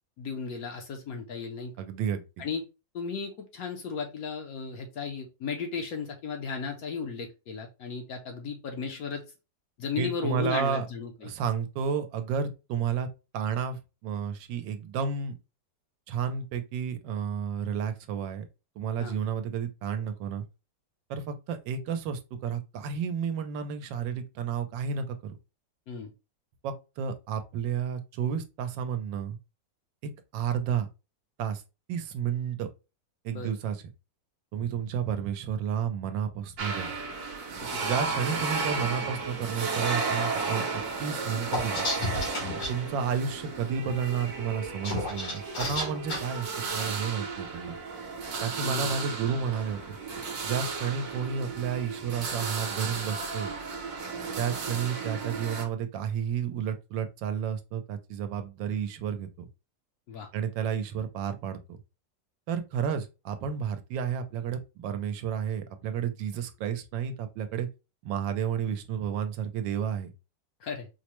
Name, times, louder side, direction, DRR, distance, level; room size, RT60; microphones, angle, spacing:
voice 1, 0.2-1.7 2.4-2.6 2.9-9.2 9.8-11.3 19.0-19.2 25.9-26.1 33.3-33.5 37.7-37.9 48.6-49.0 60.1-60.3 70.6-70.9, left 5 dB, 65° left, 0.9 m, -35 dB
voice 2, 1.8-2.2 10.0-10.9 11.2-13.1 13.3-15.3 16.1-18.4 18.8-20.4 21.1-25.4 26.6-29.4 30.0-30.9 31.4-31.6 31.9-32.7 33.2-33.8 34.5-36.9 37.8-41.8 42.7-47.8 48.4-50.0 50.4-53.5 54.4-59.5 60.3-61.8 62.5-67.7 68.0-70.1, right 7 dB, 80° right, 1.3 m, -31 dB
sound 1, 36.6-55.6, right 4 dB, 65° right, 1.1 m, -34 dB
sound 2, 41.5-42.7 44.6-46.2, left 2 dB, 85° left, 2.3 m, -31 dB
4.6 x 2.1 x 2.9 m
omnidirectional pair, 2.0 m